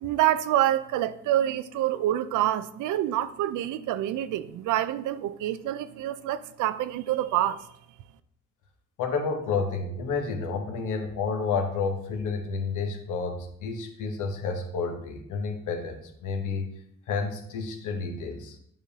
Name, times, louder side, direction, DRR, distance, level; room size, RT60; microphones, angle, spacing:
voice 1, 0.0-7.7, right 13 dB, 85° right, 14 dB, 0.5 m, -27 dB
voice 2, 9.0-16.7 17.1-18.6, left 4 dB, 80° left, 4 dB, 1.1 m, -30 dB
9.3 x 5.2 x 2.8 m, 0.70 s
cardioid pair, 90°, 30 cm